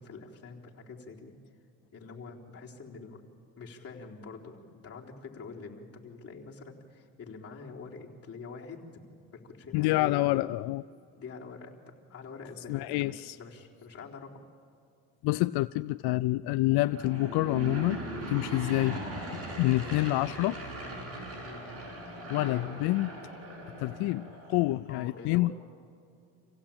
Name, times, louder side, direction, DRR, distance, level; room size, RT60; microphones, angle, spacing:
voice 1, 0.0-1.3 1.9-3.2 3.6-9.0 9.3-10.5 11.2-11.7 12.1-14.4 21.4-21.7 22.4-22.7 24.9-25.5, left 4 dB, 40° left, -3 dB, 4.0 m, -45 dB
voice 2, 9.7-10.8 12.7-13.4 15.2-18.0 18.3-19.0 19.3-20.6 22.3-23.1 23.8-25.5, left 19 dB, 85° left, 14 dB, 0.5 m, -27 dB
Aircraft / Engine, 16.7-24.7, right 1 dB, 40° right, 7.3 m, -39 dB
27.0 x 16.5 x 8.8 m, 2.5 s
cardioid pair, 105°, 37 cm